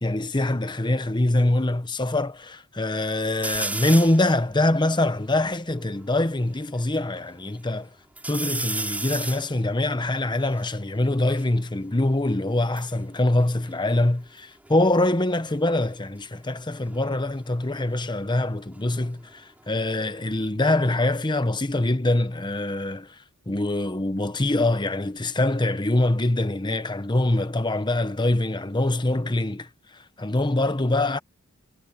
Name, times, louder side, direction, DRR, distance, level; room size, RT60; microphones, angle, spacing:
voice 1, 0.0-7.9 8.3-23.1 23.5-29.7 30.2-31.2, left 2 dB, 20° left, 1.0 m, -24 dB
sound 1, 3.4-4.3 4.8-4.9 5.1-6.7 7.2-7.8 8.2-11.5 12.5-14.4 14.6-15.1 16.7-19.3 19.7-20.5, right 2 dB, 5° right, 4.3 m, -35 dB
head